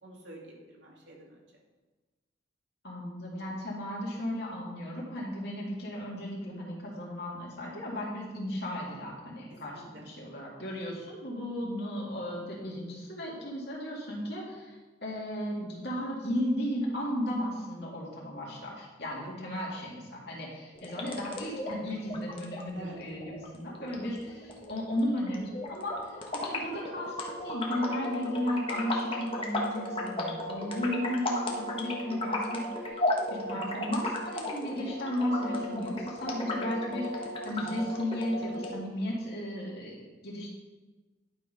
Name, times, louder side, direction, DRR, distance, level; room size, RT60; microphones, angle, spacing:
voice 1, 0.0-1.4 9.7-10.0 19.1-19.4 22.7-23.0 33.5-33.7, right 1 dB, 70° right, -3 dB, 2.3 m, -48 dB
voice 2, 2.8-26.2 26.4-33.0 33.3-40.5, equal, 55° left, -4 dB, 2.3 m, -35 dB
sound 1, 20.7-38.7, left 1 dB, 30° left, 1.0 m, -35 dB
11.0 x 4.0 x 5.2 m, 1.3 s
head